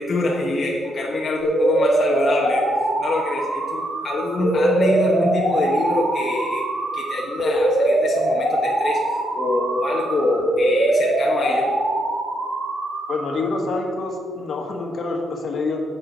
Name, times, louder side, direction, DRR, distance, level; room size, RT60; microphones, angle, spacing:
voice 1, 0.0-6.6 6.9-11.7, left 2 dB, 35° left, -3 dB, 1.0 m, -25 dB
sound 1, 1.4-13.4, right 1 dB, 60° right, 1.5 m, -22 dB
voice 2, 13.1-15.8, left 3 dB, 55° left, 1 dB, 1.4 m, -26 dB
7.5 x 7.2 x 5.1 m, 2.1 s
cardioid pair, 135°, 0 cm